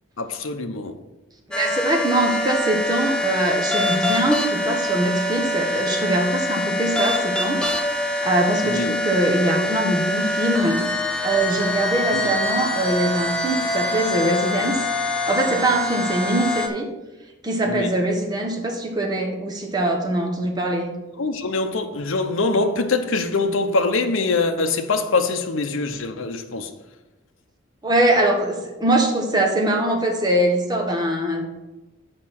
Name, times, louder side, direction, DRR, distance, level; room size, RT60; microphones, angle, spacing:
voice 1, 0.2-1.0 8.6-9.0 12.1-12.4 17.7-17.9 21.2-26.7, left 3 dB, 75° left, 0.7 m, -23 dB
sound 1, 1.5-16.7, left 1 dB, 5° left, 0.6 m, -25 dB
voice 2, 1.5-7.6 8.2-10.8 11.2-14.8 15.3-16.9 17.4-20.9 27.8-31.4, right 1 dB, 20° right, 1.1 m, -22 dB
6.6 x 5.2 x 5.7 m
head